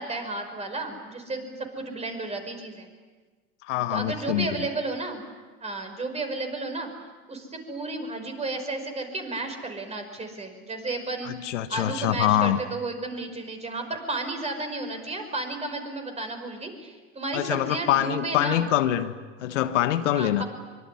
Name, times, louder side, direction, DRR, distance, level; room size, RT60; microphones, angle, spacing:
voice 1, 0.0-2.9 3.7-5.2 5.6-6.9 7.3-18.7 20.1-20.4, right 2 dB, 15° right, 5 dB, 5.5 m, -33 dB
voice 2, 3.7-4.5 11.2-12.6 17.3-20.4, left 12 dB, 80° left, 10 dB, 1.5 m, -24 dB
24.0 x 23.5 x 9.7 m, 1.3 s
supercardioid pair, 110°, 36 cm